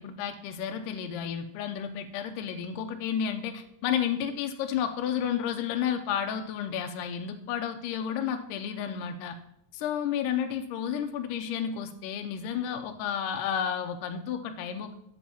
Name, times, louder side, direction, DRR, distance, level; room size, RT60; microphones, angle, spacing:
voice 1, 0.0-9.4 9.7-14.9, left 8 dB, 80° left, 5 dB, 2.2 m, -31 dB
12.5 x 7.6 x 2.9 m, 0.74 s
omnidirectional pair, 3.9 m